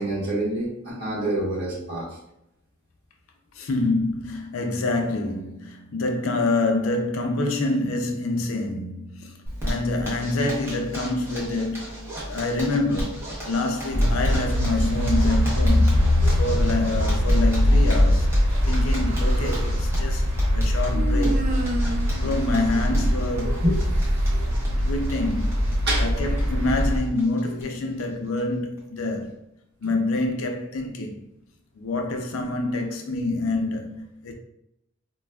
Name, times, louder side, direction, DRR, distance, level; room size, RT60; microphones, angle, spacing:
voice 1, 0.0-2.2 23.6-23.8 24.3-24.4 25.8-26.0, right 1 dB, 50° right, 1.2 m, -26 dB
voice 2, 3.5-16.0 16.3-18.3 18.6-20.2 20.5-21.5 22.2-23.6 24.8-29.3 29.8-31.3 31.7-34.3, left 2 dB, 70° left, 0.5 m, -27 dB
Zipper (clothing), 9.5-27.6 28.0-28.1 28.4-28.5 28.8-29.2, equal, 10° right, 0.8 m, -36 dB
sound 1, 13.9-27.0, equal, 85° right, 0.8 m, -22 dB
Human voice, 18.8-19.8 20.9-23.6, right 2 dB, 35° right, 0.4 m, -32 dB
4.0 x 2.3 x 2.2 m
head